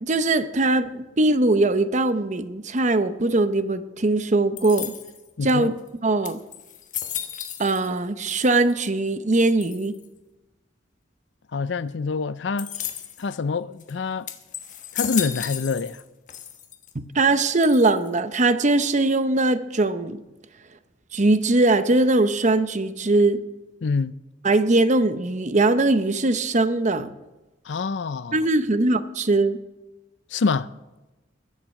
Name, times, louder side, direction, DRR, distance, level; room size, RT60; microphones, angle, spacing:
voice 1, 0.0-4.9 5.4-5.7 6.0-6.4 7.6-10.0 16.9-20.2 21.1-23.4 24.4-27.1 28.3-29.6, right 2 dB, 40° right, 0.8 m, -21 dB
sound 1, 4.6-5.3 5.9-6.0 6.2-8.0 8.3-8.9 9.6-10.1 12.6-13.3 13.8-13.9 14.3-16.0 16.3-16.9 17.6-18.2, left 10 dB, 45° left, 1.3 m, -34 dB
voice 2, 5.4-5.7 11.5-12.7 13.2-14.3 14.9-16.0 23.8-24.1 27.6-28.4 30.3-30.7, left 4 dB, 70° left, 0.5 m, -26 dB
22.0 x 7.5 x 6.5 m
head